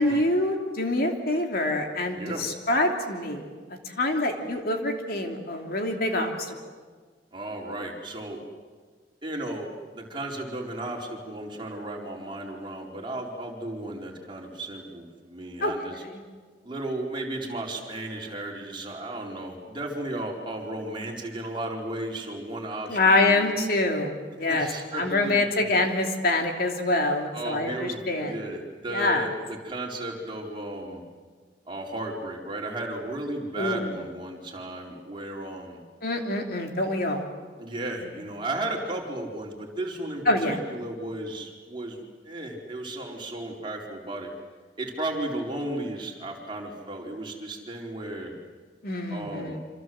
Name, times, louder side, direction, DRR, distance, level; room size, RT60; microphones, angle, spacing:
voice 1, 0.0-3.5 3.9-6.5 15.6-15.7 16.1-16.2 22.9-24.7 24.9-28.3 28.9-29.3 33.6-33.9 36.0-37.3 40.3-40.6 48.8-49.6, left 2 dB, 60° left, 3 dB, 3.0 m, -25 dB
voice 2, 2.1-2.5 7.3-8.4 9.2-16.0 16.6-23.5 24.4-25.6 27.3-31.0 31.7-35.8 37.6-44.3 44.8-48.3 49.1-49.6, right 1 dB, 30° right, -1 dB, 4.5 m, -34 dB
27.5 x 26.5 x 7.9 m, 1.5 s
head